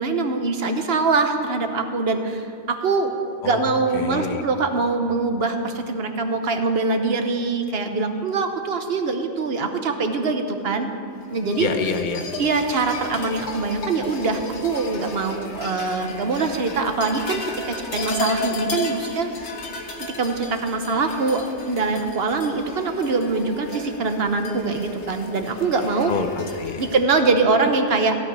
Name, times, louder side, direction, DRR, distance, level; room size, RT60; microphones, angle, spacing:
voice 1, 0.0-3.1 3.4-10.9 11.3-11.7 12.4-19.3 20.0-26.1 26.8-28.2, right 3 dB, 55° right, 6 dB, 1.2 m, -23 dB
voice 2, 3.4-4.4 11.6-12.2 26.1-26.8, left 5 dB, 45° left, 7 dB, 1.0 m, -27 dB
sound 1, 11.3-27.0, left 3 dB, 65° left, 1.4 m, -34 dB
16.0 x 5.8 x 9.6 m, 2.5 s
omnidirectional pair, 1.3 m